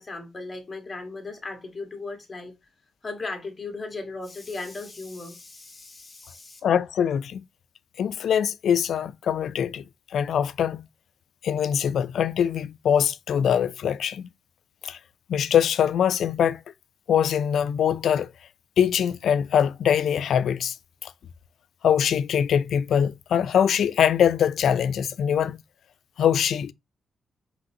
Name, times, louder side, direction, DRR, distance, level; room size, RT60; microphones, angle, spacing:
voice 1, 0.0-2.6 3.0-6.6, left 3 dB, 25° left, 1.4 m, -37 dB
voice 2, 6.6-7.4 8.0-9.8 10.1-10.8 11.4-14.3 14.8-15.0 15.3-16.6 17.1-18.3 18.8-20.8 21.0-21.1 21.8-25.6 26.2-26.7, left 8 dB, 80° left, 0.3 m, -23 dB
5.3 x 3.2 x 2.7 m
wide cardioid pair, 140°, 0 cm